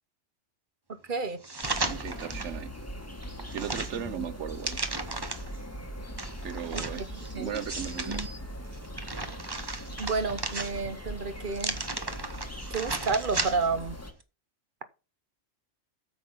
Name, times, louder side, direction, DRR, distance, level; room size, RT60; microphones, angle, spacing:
sound 1, 1.4-2.6 3.0-5.6 6.2-8.3 8.7-11.0 11.5-13.8 14.2-14.3, right 2 dB, 20° right, 1.0 m, -35 dB
sound 2, 1.6-14.1, equal, 10° left, 1.7 m, -40 dB
voice 1, 1.8-2.7 3.5-4.9 6.4-8.2, right 8 dB, 75° right, 1.2 m, -37 dB
voice 2, 6.7-7.6 10.0-11.8 12.7-14.0, right 4 dB, 45° right, 1.1 m, -31 dB
9.3 x 7.7 x 5.6 m
omnidirectional pair, 1.2 m